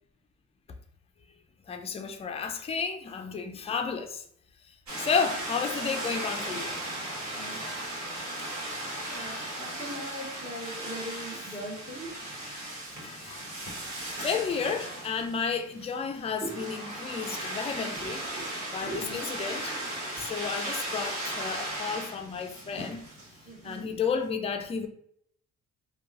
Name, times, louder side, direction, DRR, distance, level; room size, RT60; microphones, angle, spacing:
voice 1, 1.7-4.2 5.0-6.8 9.0-9.6 12.6-13.4 14.2-18.3 18.7-19.7 20.1-23.1 23.6-24.9, left 6 dB, 20° left, 0.3 m, -32 dB
sound 1, 4.9-23.8, right 1 dB, 65° right, 1.3 m, -37 dB
voice 2, 7.3-7.6 9.1-12.2 16.4-16.5 17.9-18.1 18.3-18.4 18.8-19.3 23.4-23.9, right 1 dB, 30° right, 1.4 m, -40 dB
2.9 x 2.3 x 2.3 m
cardioid pair, 90°, 30 cm